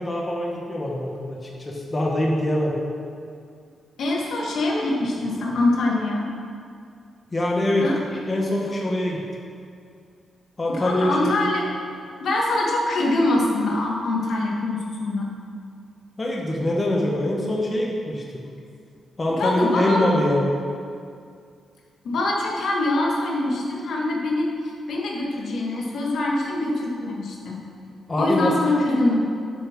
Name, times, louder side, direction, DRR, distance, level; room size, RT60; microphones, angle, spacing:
voice 1, 0.0-2.8 7.3-7.9 8.3-9.2 10.6-11.4 16.2-18.2 19.2-20.5 28.1-28.5, left 1 dB, 25° left, -2 dB, 1.5 m, -24 dB
voice 2, 4.0-6.3 7.8-8.0 10.7-11.7 12.2-15.3 19.4-20.1 22.0-27.6 28.2-29.2, left 2 dB, 70° left, -2 dB, 2.1 m, -24 dB
10.0 x 7.4 x 6.1 m, 2.3 s
cardioid pair, 115°, 0 cm